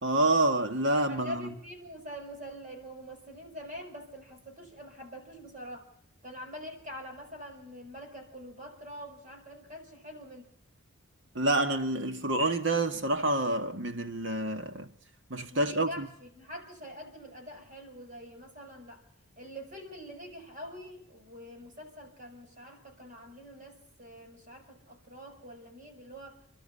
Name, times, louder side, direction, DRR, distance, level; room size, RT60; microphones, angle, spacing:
voice 1, 0.0-1.4 11.4-14.9 15.3-16.1, right 2 dB, 55° right, 1.9 m, -28 dB
voice 2, 1.1-5.9 6.2-10.5 15.5-19.0 19.4-26.4, equal, 35° right, 5.8 m, -45 dB
29.5 x 12.0 x 8.5 m
head